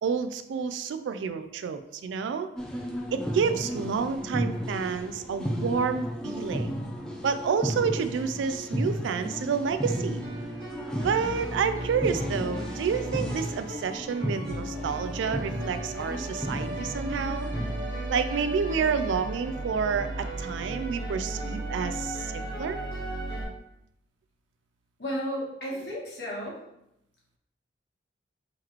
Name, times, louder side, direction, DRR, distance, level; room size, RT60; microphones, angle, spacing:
voice 1, 0.0-2.5 3.1-6.7 7.2-10.2 11.0-17.5 18.1-22.8, right 6 dB, 85° right, 11 dB, 0.3 m, -29 dB
sound 1, 2.6-17.8, equal, 5° left, 0.4 m, -34 dB
sound 2, 9.8-23.4, right 1 dB, 25° right, 1.4 m, -35 dB
voice 2, 25.0-26.6, equal, 60° left, -5 dB, 1.3 m, -33 dB
3.8 x 3.0 x 3.0 m, 0.82 s
head